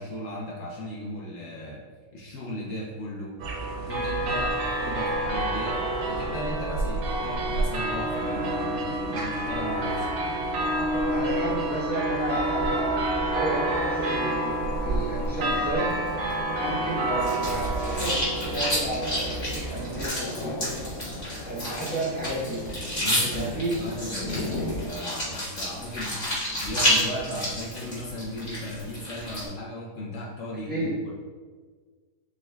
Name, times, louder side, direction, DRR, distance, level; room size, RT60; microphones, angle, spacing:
voice 1, 0.0-1.8 2.1-3.3 3.8-10.1 23.0-26.2 26.6-31.1, left 1 dB, 60° left, -4 dB, 0.9 m, -36 dB
sound 1, 3.4-20.1, right 1 dB, 70° right, 1.1 m, -28 dB
voice 2, 11.1-15.9 16.6-20.6 21.4-22.6 23.3-23.8 30.7-31.0, right 1 dB, 10° right, -8 dB, 0.7 m, -32 dB
Thunder / Rain, 13.7-24.9, left 2 dB, 85° left, 1.2 m, -39 dB
sound 2, 17.2-29.5, equal, 40° left, 1.9 m, -30 dB
5.2 x 3.6 x 2.2 m, 1.5 s
omnidirectional pair, 1.7 m